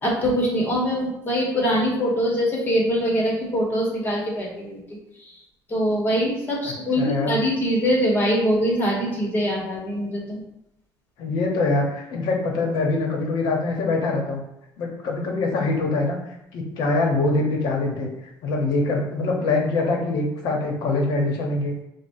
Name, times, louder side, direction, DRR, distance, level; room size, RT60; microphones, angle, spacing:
voice 1, 0.0-4.8 5.2-5.3 5.7-10.4, equal, 25° left, -2 dB, 1.0 m, -23 dB
voice 2, 6.7-7.4 11.2-14.4 14.8-18.1 18.4-21.7, left 3 dB, 65° left, 1 dB, 0.8 m, -24 dB
4.9 x 2.1 x 2.6 m, 0.84 s
cardioid pair, 130°, 8 cm